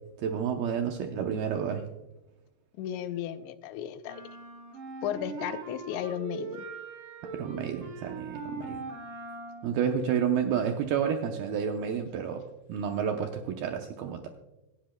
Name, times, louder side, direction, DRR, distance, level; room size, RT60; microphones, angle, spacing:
voice 1, 0.2-1.8 7.3-8.8 9.6-12.4 12.7-14.3, right 8 dB, 80° right, 4 dB, 2.2 m, -30 dB
voice 2, 2.8-4.2 5.0-6.6, left 10 dB, 85° left, 11 dB, 2.8 m, -34 dB
sound 1, 4.0-9.8, right 3 dB, 55° right, 4.0 m, -41 dB
26.0 x 10.0 x 2.2 m, 1.0 s
omnidirectional pair, 5.2 m